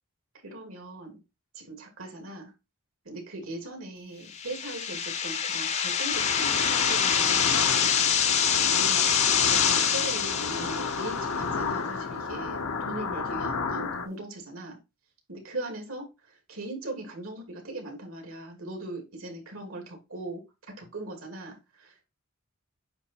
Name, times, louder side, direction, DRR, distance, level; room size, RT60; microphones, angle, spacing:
voice 1, 0.4-1.2 1.5-2.5 3.0-8.1 8.7-9.1 9.5-14.8 15.3-20.4 20.8-22.0, right 2 dB, 75° right, 2 dB, 2.7 m, -39 dB
sound 1, 4.3-11.3, left 7 dB, 30° left, 0.6 m, -25 dB
sound 2, 6.1-14.1, left 4 dB, 85° left, 0.9 m, -32 dB
8.9 x 3.0 x 4.3 m, 0.25 s
head